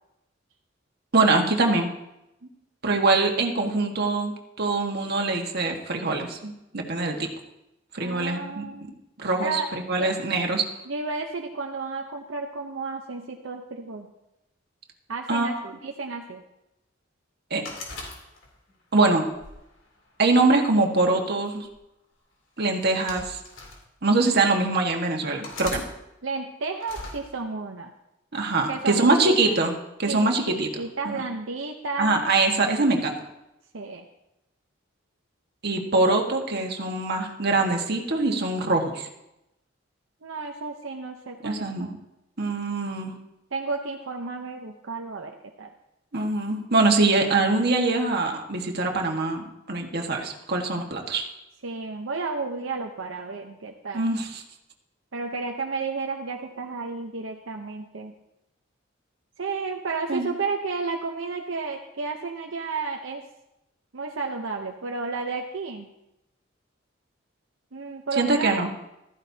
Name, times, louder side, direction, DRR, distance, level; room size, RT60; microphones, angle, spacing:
voice 1, 1.1-1.9 2.8-4.3 4.6-7.3 7.9-8.6 9.2-10.7 15.3-15.6 17.5-17.6 18.9-19.3 20.2-21.7 22.6-23.4 24.0-25.8 28.3-29.7 30.0-30.7 31.0-31.2 32.0-33.2 35.6-39.1 41.4-41.9 42.4-43.1 46.1-51.3 53.9-54.4 60.1-60.3 68.2-68.7, right 3 dB, 55° right, 2 dB, 1.6 m, -23 dB
voice 2, 8.0-8.9 9.4-9.7 10.0-10.1 10.9-14.1 15.1-16.4 26.2-27.9 28.7-29.6 30.1-30.2 30.5-32.3 33.7-34.1 40.2-42.0 43.5-45.7 51.6-54.0 55.1-58.1 59.4-63.2 63.9-65.9 67.7-68.6, right 4 dB, 80° right, 2 dB, 0.8 m, -32 dB
sound 1, 17.7-18.7 19.3-20.5 21.5-21.7 22.7-23.8 24.5-24.6 25.4-25.9 26.8-27.2, left 2 dB, 85° left, 3.3 m, -39 dB
15.0 x 13.5 x 2.8 m, 0.90 s
head